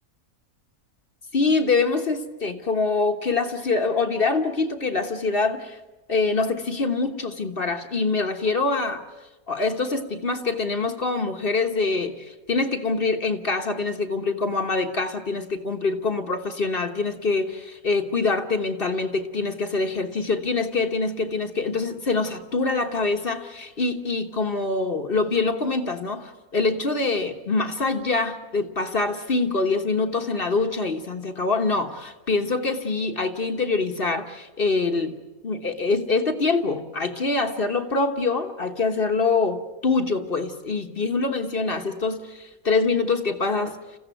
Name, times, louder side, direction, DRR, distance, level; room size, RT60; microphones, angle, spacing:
voice 1, 1.3-5.8 6.1-9.0 9.5-35.2 35.4-43.8, left 3 dB, 40° left, 6 dB, 1.4 m, -25 dB
28.5 x 15.5 x 9.1 m, 1.2 s
omnidirectional pair, 1.5 m